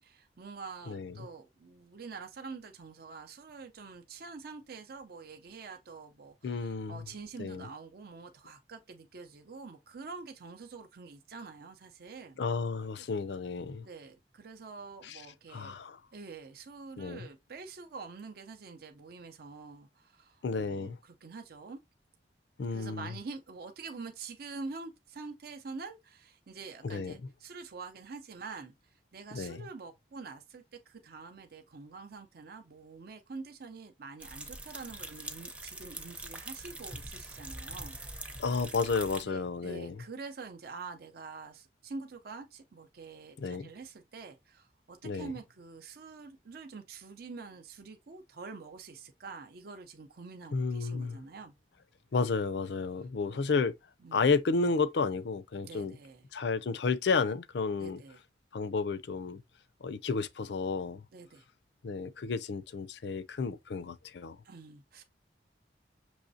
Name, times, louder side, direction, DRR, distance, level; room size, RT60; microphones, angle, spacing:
voice 1, 0.0-12.4 13.8-15.8 16.1-21.8 22.7-38.0 38.3-38.4 39.2-51.5 53.3-53.4 54.0-54.3 55.6-56.2 57.8-58.2 61.1-61.4 64.4-65.0, right 4 dB, 60° right, 0.5 m, -46 dB
voice 2, 6.4-7.0 7.4-7.7 12.4-13.9 15.0-15.2 15.5-16.0 17.0-17.3 20.4-21.0 22.6-23.1 26.8-27.1 29.3-29.7 38.4-40.0 43.4-43.7 45.0-45.3 50.5-51.2 52.1-53.7 54.1-56.0 56.3-58.0 58.5-59.4 59.8-61.0 61.8-64.4, left 4 dB, 70° left, 0.4 m, -32 dB
sound 1, 34.2-39.2, right 1 dB, 5° right, 0.6 m, -43 dB
6.2 x 3.1 x 2.7 m
head